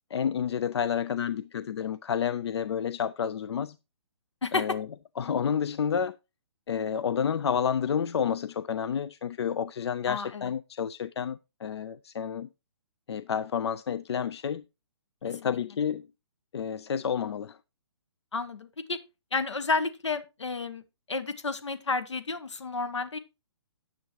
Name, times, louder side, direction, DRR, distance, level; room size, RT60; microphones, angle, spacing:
voice 1, 0.1-3.8 4.5-4.9 5.2-6.2 6.7-12.5 13.1-14.6 15.2-16.1 16.5-17.6, left 7 dB, 70° left, 0.5 m, -30 dB
voice 2, 4.4-4.8 10.1-10.4 15.4-15.6 18.3-19.0 19.3-20.8 21.1-23.2, left 4 dB, 90° left, 1.0 m, -31 dB
9.9 x 8.4 x 3.1 m
hypercardioid pair, 145°, 14 cm